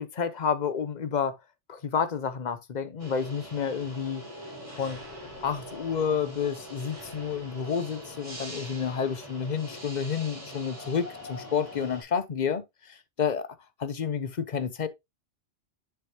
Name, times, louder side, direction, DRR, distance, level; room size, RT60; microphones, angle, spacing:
voice 1, 0.0-1.4 1.7-4.2 4.8-5.0 5.4-13.5 13.8-14.9, left 6 dB, 45° left, 0.8 m, -30 dB
sound 1, 3.0-12.0, equal, 25° right, 3.2 m, -43 dB
6.8 x 6.7 x 2.9 m
omnidirectional pair, 1.2 m